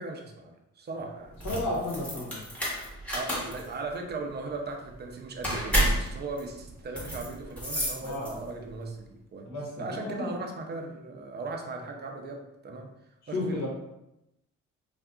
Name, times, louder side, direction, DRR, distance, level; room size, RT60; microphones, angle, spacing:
voice 1, 0.0-1.4 3.1-12.9 13.3-13.7, right 3 dB, 35° right, 3 dB, 0.5 m, -38 dB
sound 1, 1.3-8.6, equal, 5° left, 0.9 m, -31 dB
voice 2, 1.4-2.4 8.0-8.4 9.4-10.3 13.3-13.7, left 1 dB, 65° left, -3 dB, 1.0 m, -33 dB
2.6 x 2.4 x 2.3 m, 0.87 s
cardioid pair, 90°, 30 cm